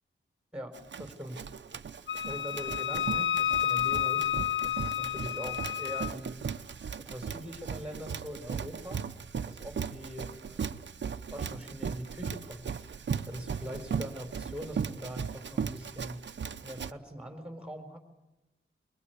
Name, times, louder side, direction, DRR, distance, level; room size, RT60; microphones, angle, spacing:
voice 1, 0.5-1.4 2.2-4.3 4.6-6.7 7.0-9.0 9.4-10.8 11.3-12.6 12.9-16.3 16.6-18.0, equal, 5° right, 5 dB, 4.6 m, -43 dB
Run, 0.7-16.9, right 6 dB, 60° right, 0.8 m, -37 dB
Wind instrument woodwind instrument, 2.1-6.1, left 10 dB, 65° left, 1.8 m, -30 dB
23.0 x 23.0 x 9.4 m, 1.0 s
wide cardioid pair, 140°, 21 cm